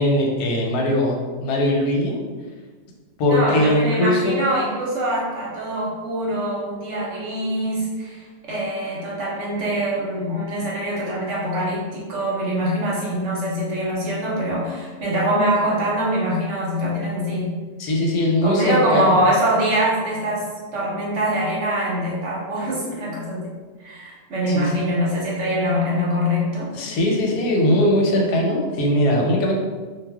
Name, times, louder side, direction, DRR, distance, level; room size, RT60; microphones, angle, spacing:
voice 1, 0.0-2.2 3.2-4.5 17.8-19.2 24.5-24.7 26.7-29.6, left 1 dB, 85° left, -1 dB, 1.2 m, -20 dB
voice 2, 3.3-17.5 18.4-23.5 23.8-26.7, equal, 60° right, -4 dB, 0.9 m, -24 dB
2.4 x 2.3 x 3.3 m, 1.4 s
omnidirectional pair, 1.6 m